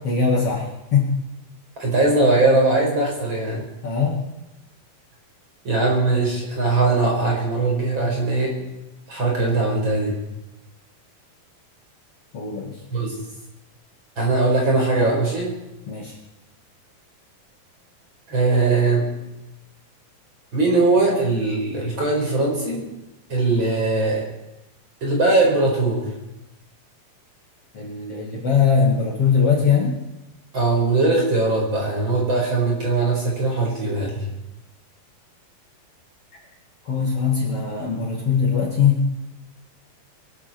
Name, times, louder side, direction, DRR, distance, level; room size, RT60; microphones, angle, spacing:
voice 1, 0.0-1.2 3.8-4.2 12.3-12.8 15.9-16.1 27.7-30.0 36.9-39.1, left 6 dB, 45° left, -1 dB, 2.8 m, -21 dB
voice 2, 1.8-3.7 5.6-8.6 9.1-10.2 12.9-13.1 14.2-15.5 18.3-19.0 20.5-22.8 23.3-24.3 25.0-26.1 30.5-34.2, right 3 dB, 30° right, -2 dB, 5.5 m, -20 dB
23.0 x 13.5 x 4.5 m, 0.96 s
omnidirectional pair, 4.2 m